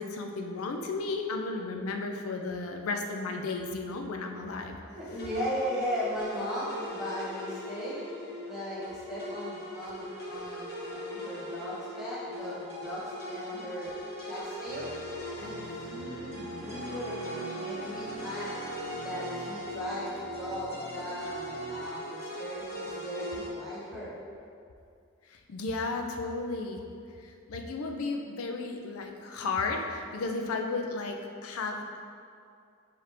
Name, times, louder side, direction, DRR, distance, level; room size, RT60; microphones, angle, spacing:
voice 1, 0.0-4.8 25.3-26.8 27.2-32.0, left 3 dB, 80° left, 3 dB, 0.4 m, -34 dB
voice 2, 4.7-8.0 8.4-13.9 14.2-14.9 15.4-18.6 18.9-24.1, equal, ahead, -10 dB, 1.0 m, -37 dB
sound 1, 5.0-23.5, equal, 50° left, 0.9 m, -40 dB
sound 2, 14.7-21.8, right 1 dB, 65° right, 1.4 m, -46 dB
4.7 x 3.1 x 3.4 m, 2.4 s
head